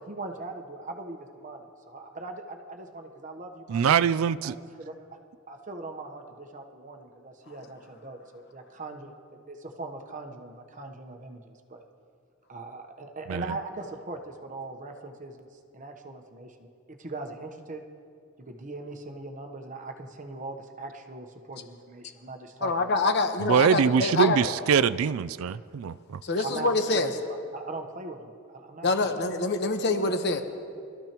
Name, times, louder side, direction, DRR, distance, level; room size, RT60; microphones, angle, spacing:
voice 1, 0.1-4.0 4.3-5.2 5.5-9.1 9.5-11.8 12.5-15.5 15.7-16.7 17.0-17.8 18.5-22.9 23.8-23.9 25.5-25.6 26.4-26.7 27.5-29.1, right 3 dB, 40° right, 4 dB, 1.0 m, -40 dB
voice 2, 3.7-4.5 13.3-13.4 23.4-26.2, right 7 dB, 85° right, 16 dB, 0.4 m, -23 dB
voice 3, 22.6-24.5 26.2-27.1 28.8-30.4, left 3 dB, 55° left, 6 dB, 1.1 m, -25 dB
24.5 x 13.5 x 3.0 m, 2.3 s
head